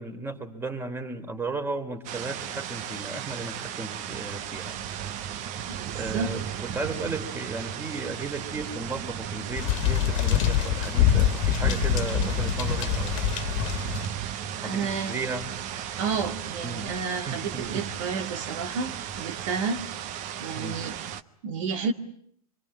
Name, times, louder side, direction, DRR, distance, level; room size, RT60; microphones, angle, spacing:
voice 1, 0.0-4.8 5.9-13.2 14.6-15.5 16.6-16.8 17.3-17.8 20.6-20.8, right 3 dB, 10° right, 3.2 m, -35 dB
sound 1, 2.0-21.2, right 9 dB, 40° right, 1.2 m, -35 dB
voice 2, 5.7-6.3 14.6-15.2 16.0-19.8 20.4-21.0 21.4-21.9, right 5 dB, 60° right, 2.1 m, -31 dB
sound 2, 9.6-14.1, left 11 dB, 55° left, 1.7 m, -25 dB
26.0 x 23.5 x 9.7 m
hypercardioid pair, 115°, 19 cm